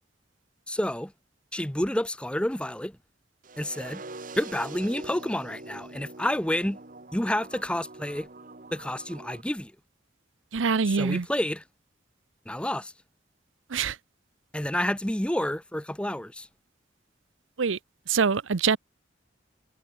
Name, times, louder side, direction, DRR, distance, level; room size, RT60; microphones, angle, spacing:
voice 1, 0.7-1.1 1.5-2.9 3.6-4.0 4.4-6.8 7.1-8.3 8.7-9.7 10.9-11.6 12.5-12.9 14.5-16.5, left 1 dB, 5° left, 0.9 m, -29 dB
sound 1, 3.4-9.4, right 2 dB, 45° right, 1.5 m, -44 dB
voice 2, 10.5-11.3 13.7-14.0 17.6-17.8 18.1-18.8, right 5 dB, 90° right, 0.7 m, -24 dB
head